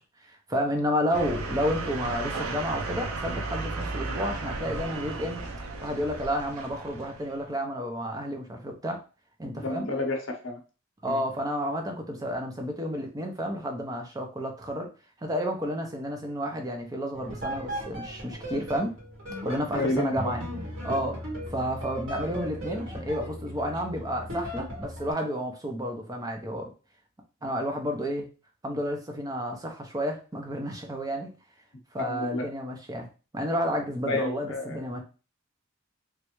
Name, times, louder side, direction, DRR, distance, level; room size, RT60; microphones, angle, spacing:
voice 1, 0.2-5.4 5.8-9.0 9.4-9.9 11.0-14.9 15.2-18.9 19.4-20.4 20.8-26.7 27.4-28.3 28.6-31.3 31.9-33.1 33.3-35.0, equal, 15° right, 3 dB, 0.6 m, -31 dB
sound 1, 1.1-7.4, right 3 dB, 85° right, 0.6 m, -34 dB
voice 2, 9.6-10.6 11.1-11.2 19.7-20.4 32.0-32.5 34.1-34.8, left 2 dB, 60° left, 4 dB, 0.7 m, -30 dB
sound 2, 17.1-25.1, equal, 65° right, 1.6 m, -37 dB
3.1 x 2.4 x 3.0 m, 0.34 s
head